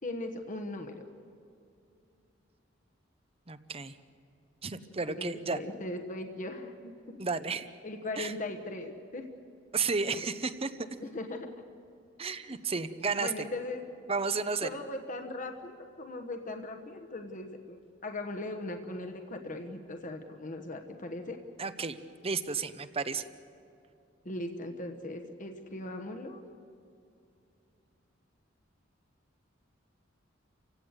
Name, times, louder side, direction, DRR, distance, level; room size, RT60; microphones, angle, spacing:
voice 1, 0.0-1.0 5.1-7.2 7.8-9.3 11.0-11.5 12.5-12.8 13.2-13.8 14.6-21.4 24.2-26.4, left 2 dB, 40° left, 5 dB, 1.2 m, -39 dB
voice 2, 3.5-4.0 4.6-5.6 7.2-7.7 8.2-8.3 9.7-10.7 12.2-13.3 14.1-14.7 21.6-22.0 22.2-23.3, right 4 dB, 30° right, 12 dB, 0.8 m, -32 dB
29.0 x 16.5 x 8.1 m, 2.6 s
head